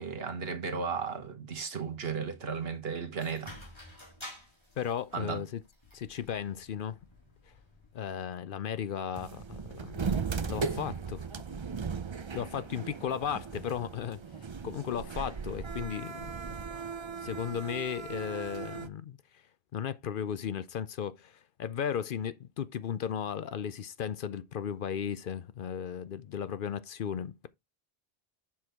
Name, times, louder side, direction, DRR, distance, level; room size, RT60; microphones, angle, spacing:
voice 1, 0.0-3.5 5.1-5.4, right 5 dB, 75° right, 1.5 m, -35 dB
sound 1, 3.2-8.5, left 1 dB, 25° left, 3.1 m, -51 dB
voice 2, 4.8-5.6 5.9-7.0 7.5-7.6 7.9-10.1 10.5-11.3 12.3-14.2 14.6-16.5 17.2-19.2 19.7-27.5, left 8 dB, 60° left, 0.7 m, -35 dB
sound 2, 9.2-18.9, right 5 dB, 35° right, 0.5 m, -37 dB
7.4 x 6.2 x 3.4 m
omnidirectional pair, 1.0 m